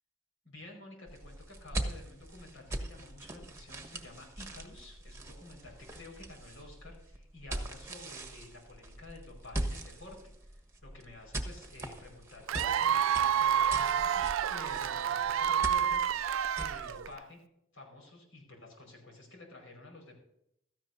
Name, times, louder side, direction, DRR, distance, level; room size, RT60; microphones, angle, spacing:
voice 1, 0.4-17.4 17.7-20.2, left 2 dB, 90° left, 1 dB, 5.0 m, -51 dB
sound 1, 1.1-17.1, right 1 dB, 15° right, 1.2 m, -42 dB
Cheering / Applause / Crowd, 12.5-17.2, right 8 dB, 80° right, 0.4 m, -29 dB
16.0 x 13.5 x 2.7 m, 0.76 s
head